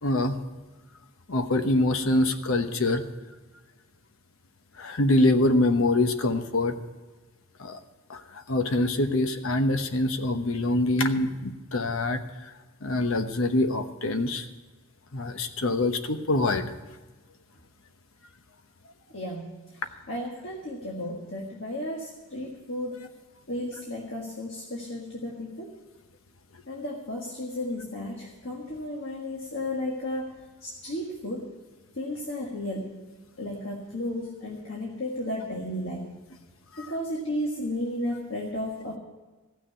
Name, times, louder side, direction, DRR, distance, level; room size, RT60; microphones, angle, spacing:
voice 1, 0.0-0.4 1.3-3.0 4.8-6.7 7.6-7.8 8.1-12.2 12.8-14.4 15.1-16.6, left 2 dB, 70° left, 8 dB, 1.0 m, -24 dB
voice 2, 19.1-19.5 20.1-23.1 23.5-25.7 26.7-30.3 30.6-31.5 32.0-33.0 33.4-36.1 36.8-39.0, left 1 dB, 55° left, -1 dB, 1.7 m, -33 dB
15.5 x 6.5 x 9.4 m, 1.3 s
head